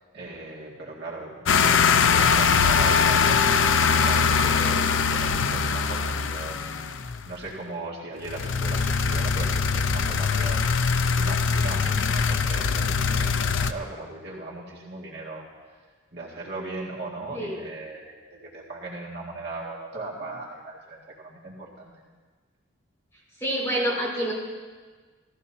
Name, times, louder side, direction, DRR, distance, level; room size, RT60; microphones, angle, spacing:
voice 1, 0.1-3.5 3.9-6.9 7.3-10.6 11.1-15.5 16.1-21.9, right 2 dB, 55° right, -5 dB, 2.0 m, -38 dB
sound 1, 1.5-7.3 8.3-13.7, left 5 dB, 70° left, 0.5 m, -22 dB
voice 2, 23.4-24.3, right 1 dB, 10° left, -8 dB, 4.3 m, -27 dB
16.5 x 14.5 x 2.7 m, 1.4 s
head